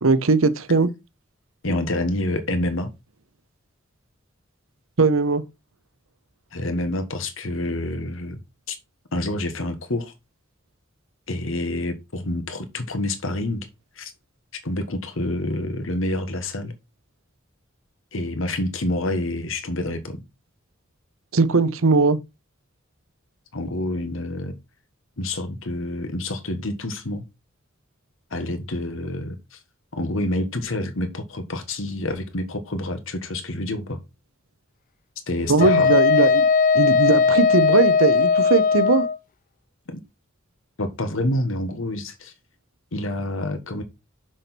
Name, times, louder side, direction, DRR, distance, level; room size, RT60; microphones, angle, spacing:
voice 1, 0.0-0.9 5.0-5.4 21.3-22.2 35.5-36.5 36.7-39.1, right 3 dB, 85° right, 0.9 m, -19 dB
voice 2, 1.6-2.9 6.5-8.4 8.7-8.8 9.1-10.1 11.3-13.7 14.0-14.1 14.6-16.7 18.1-20.2 23.5-24.6 25.2-27.2 28.3-29.6 29.9-34.0 35.3-35.9 39.9-40.0 40.8-42.3 42.9-43.8, left 1 dB, 75° left, 1.5 m, -27 dB
Wind instrument woodwind instrument, 35.6-39.2, left 5 dB, 40° left, 0.4 m, -18 dB
6.3 x 6.1 x 4.4 m
head